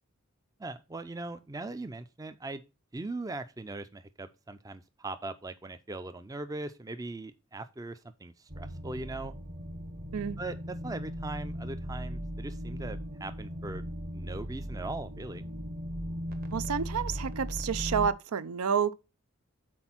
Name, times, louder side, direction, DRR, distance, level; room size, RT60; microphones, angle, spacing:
voice 1, 0.6-2.6 2.9-9.3 10.4-13.8 14.1-15.4, right 2 dB, 15° right, 0.4 m, -40 dB
sound 1, 8.5-18.1, equal, 40° right, 1.0 m, -38 dB
voice 2, 16.5-18.9, right 7 dB, 80° right, 0.5 m, -29 dB
6.1 x 4.4 x 5.7 m
head